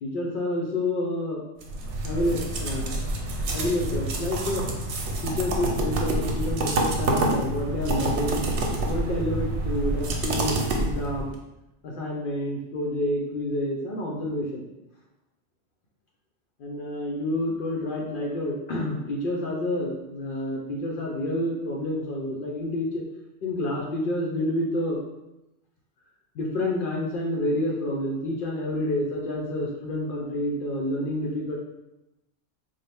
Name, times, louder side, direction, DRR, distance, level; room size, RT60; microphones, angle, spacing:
voice 1, 0.0-1.4 2.0-2.9 3.5-4.7 5.2-8.5 8.8-11.4 11.8-14.7 16.6-23.0 23.4-25.0 26.3-31.6, left 1 dB, 60° left, -2 dB, 0.6 m, -29 dB
sound 1, 1.6-11.4, right 2 dB, 90° right, 0.9 m, -27 dB
3.9 x 2.0 x 3.3 m, 0.93 s
omnidirectional pair, 1.1 m